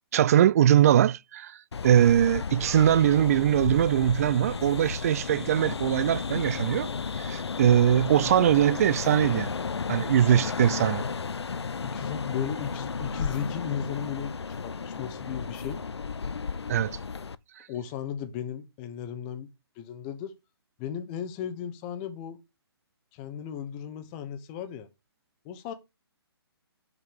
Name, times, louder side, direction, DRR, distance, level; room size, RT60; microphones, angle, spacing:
voice 1, 0.1-1.6 1.8-6.9 7.2-9.5 9.9-11.0 16.7-17.0, right 10 dB, 35° right, 0.4 m, -22 dB
sound 1, 1.7-17.4, left 5 dB, 85° left, 0.4 m, -33 dB
voice 2, 11.8-15.8 17.7-19.5 19.8-20.3 20.8-22.4 23.1-24.9 25.4-25.7, left 8 dB, 25° left, 0.9 m, -36 dB
5.6 x 5.3 x 5.2 m
figure-of-eight pair, 135°, 14 cm